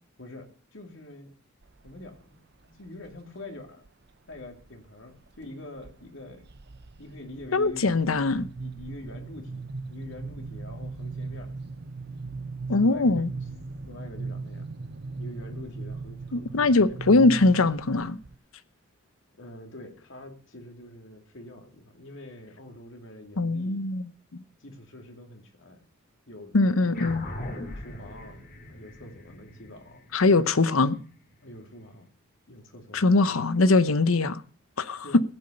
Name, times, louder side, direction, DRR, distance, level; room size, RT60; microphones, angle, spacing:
voice 1, 0.2-1.3 1.8-2.3 2.6-3.9 4.3-6.5 7.0-8.2 8.6-11.5 12.8-13.3 13.9-14.7 15.2-17.0 19.3-23.8 24.6-25.8 26.3-30.1 31.4-32.1 32.5-33.4 35.0-35.2, left 1 dB, 60° left, 2.7 m, -45 dB
sound 1, 1.6-2.2 2.6-3.2 3.9-4.7 5.1-5.5 5.8-18.4, right 3 dB, 50° right, 0.8 m, -39 dB
voice 2, 7.5-8.5 12.7-13.3 16.3-18.2 23.4-24.1 26.5-27.2 30.1-31.0 32.9-34.4 34.8-35.0, left 3 dB, 80° left, 0.8 m, -22 dB
sound 2, 26.9-31.7, left 1 dB, 45° left, 2.5 m, -41 dB
15.5 x 8.7 x 6.5 m
head